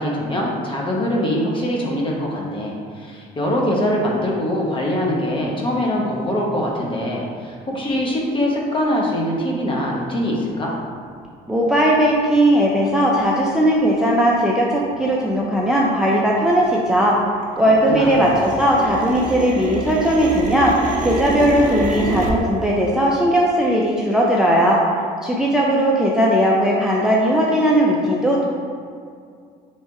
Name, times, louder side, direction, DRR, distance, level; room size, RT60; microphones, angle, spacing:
voice 1, 0.0-10.7 17.9-18.6, equal, 30° left, -2 dB, 0.8 m, -23 dB
voice 2, 11.5-17.2 17.6-20.7 21.0-24.8 25.2-28.5, equal, 5° right, -4 dB, 0.4 m, -18 dB
sound 1, 11.5-11.6 12.2-12.3 12.9-13.2 13.7-13.8 14.0-14.6 14.9-17.2 17.5-22.3, right 3 dB, 50° right, 0.6 m, -28 dB
3.2 x 2.9 x 4.5 m, 2.2 s
cardioid pair, 110°, 17 cm